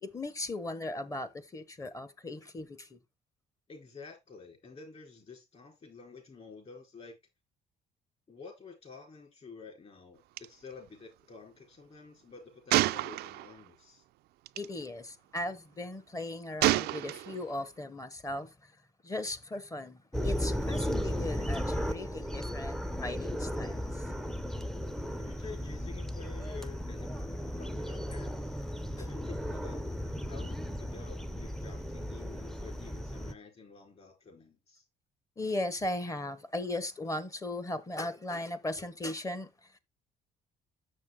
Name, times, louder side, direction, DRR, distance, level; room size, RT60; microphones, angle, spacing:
voice 1, 0.0-3.0 14.6-18.7 19.0-24.1 35.4-39.8, left 2 dB, 20° left, 1.0 m, -37 dB
voice 2, 3.7-7.1 8.3-14.0 25.2-27.1 27.6-28.5 29.0-29.8 30.3-34.8, left 4 dB, 40° left, 4.2 m, -50 dB
Gunshot gunfire, 10.4-10.5 10.7-10.9 12.7-13.7 14.5-14.7 16.6-17.5, right 17 dB, 75° right, 0.4 m, -29 dB
sound 1, 20.1-33.3, equal, ahead, 0.6 m, -35 dB
7.0 x 6.4 x 3.6 m
cardioid pair, 110°, 17 cm